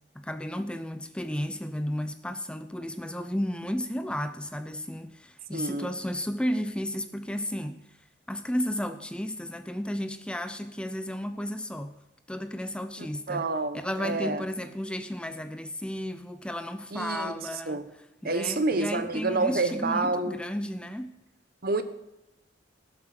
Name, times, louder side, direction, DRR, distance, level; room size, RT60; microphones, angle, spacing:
voice 1, 0.2-8.0 8.3-11.9 12.3-13.5 13.7-17.8 18.2-21.2, equal, 5° left, 0.4 m, -33 dB
voice 2, 5.5-5.9 13.0-14.4 16.9-17.9 18.2-20.4 21.6-21.8, right 3 dB, 50° right, 1.0 m, -29 dB
16.5 x 7.5 x 6.0 m
head